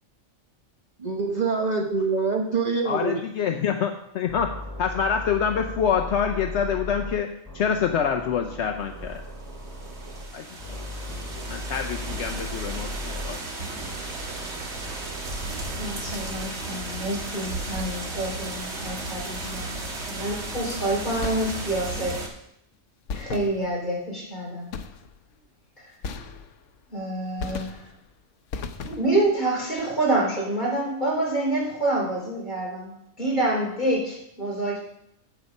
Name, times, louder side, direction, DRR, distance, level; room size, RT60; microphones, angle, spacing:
voice 1, 1.0-3.2, right 4 dB, 40° right, 1 dB, 1.0 m, -25 dB
voice 2, 2.8-7.3 7.5-9.2 10.3-10.8 11.5-13.4, left 7 dB, 70° left, 4 dB, 1.0 m, -26 dB
sound 1, 4.3-7.1 7.4-10.2 10.6-13.3 13.8-16.4, left 1 dB, 15° left, 3.4 m, -38 dB
sound 2, 9.4-22.3, right 2 dB, 65° right, 1.8 m, -34 dB
voice 3, 15.8-22.2 23.1-24.7 26.9-27.8 28.8-34.8, right 1 dB, 40° left, -4 dB, 3.9 m, -27 dB
sound 3, 21.2-21.9 23.1-24.0 24.7-25.3 26.0-26.8 27.4-28.1 28.5-29.3, left 5 dB, 90° left, 1.1 m, -36 dB
8.3 x 7.9 x 5.3 m, 0.76 s
omnidirectional pair, 1.2 m